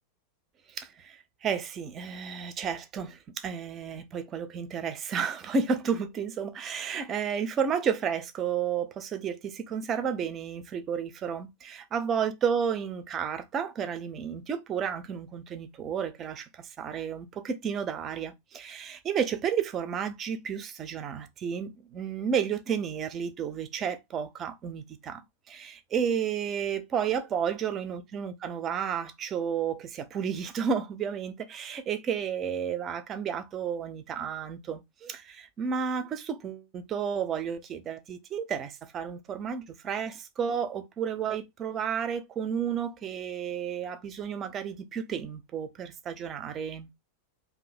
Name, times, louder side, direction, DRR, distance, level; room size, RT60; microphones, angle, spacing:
voice 1, 0.7-46.9, right 7 dB, 30° right, 0.5 m, -32 dB
2.7 x 2.6 x 4.0 m
figure-of-eight pair, 90°, 0 cm